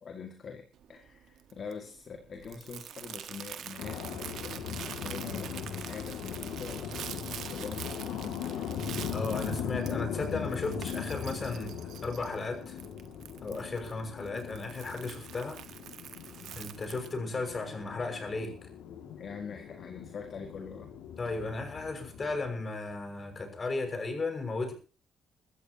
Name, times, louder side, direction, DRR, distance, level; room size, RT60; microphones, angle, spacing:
voice 1, 0.0-8.7 19.2-20.9, left 5 dB, 50° left, 4 dB, 2.1 m, -44 dB
Crumpling crinkling, 0.7-17.2, right 10 dB, 75° right, 1.4 m, -46 dB
sound 1, 3.8-22.6, left 7 dB, 90° left, 2.3 m, -39 dB
voice 2, 9.1-11.7 12.0-12.8 13.4-15.6 16.6-18.7 21.2-24.7, left 3 dB, 35° left, 5 dB, 6.0 m, -35 dB
23.5 x 13.5 x 2.9 m, 0.34 s
cardioid pair, 90°, 0 cm